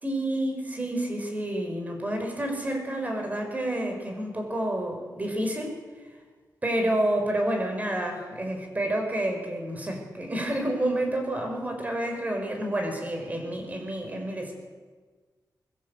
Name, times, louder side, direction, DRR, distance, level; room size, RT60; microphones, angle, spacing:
voice 1, 0.0-5.8 6.6-14.5, right 1 dB, 20° right, 4 dB, 5.2 m, -29 dB
24.5 x 21.0 x 8.1 m, 1.4 s
wide cardioid pair, 160°, 7 cm